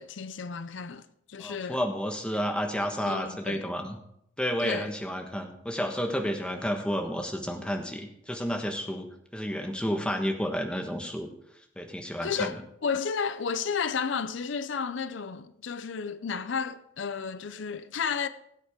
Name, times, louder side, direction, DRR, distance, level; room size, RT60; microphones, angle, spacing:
voice 1, 0.0-1.8 3.0-3.7 4.6-4.9 12.2-18.3, left 6 dB, 70° left, 0.5 m, -32 dB
voice 2, 1.4-4.0 4.4-9.1 9.3-11.3 11.8-12.6, equal, 5° left, 1.2 m, -31 dB
17.5 x 7.9 x 3.6 m
head